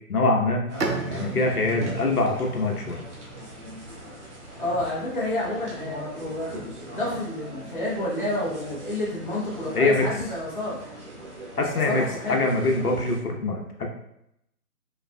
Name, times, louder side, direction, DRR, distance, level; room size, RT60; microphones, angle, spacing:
voice 1, 0.1-0.6 1.1-3.1 9.7-10.0 11.6-12.0 12.3-13.9, left 2 dB, 70° left, 1 dB, 1.0 m, -23 dB
sound 1, 0.7-13.2, equal, 45° right, 1.2 m, -39 dB
Bowed string instrument, 0.8-4.4, right 3 dB, 80° right, 0.9 m, -35 dB
voice 2, 4.6-11.0 11.6-12.4, left 1 dB, 35° left, -6 dB, 0.8 m, -30 dB
5.6 x 3.3 x 2.3 m, 0.79 s
figure-of-eight pair, 170°, 47 cm